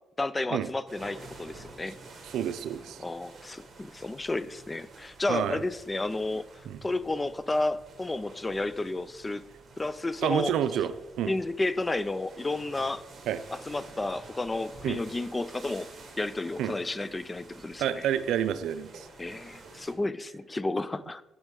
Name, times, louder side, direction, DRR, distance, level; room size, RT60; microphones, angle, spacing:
voice 1, 0.2-1.9 3.0-9.4 9.8-10.5 11.3-13.0 13.7-15.9 16.2-18.0 19.2-21.2, left 2 dB, 20° left, 16 dB, 0.3 m, -32 dB
sound 1, 0.9-19.9, right 3 dB, 40° right, 1.5 m, -50 dB
voice 2, 2.2-3.0 5.3-5.6 6.7-6.8 10.2-11.3 13.3-13.4 14.8-15.0 16.6-16.7 17.8-19.1, right 10 dB, 80° right, 12 dB, 0.4 m, -29 dB
8.0 x 6.2 x 3.6 m, 0.98 s
cardioid pair, 90°, 0 cm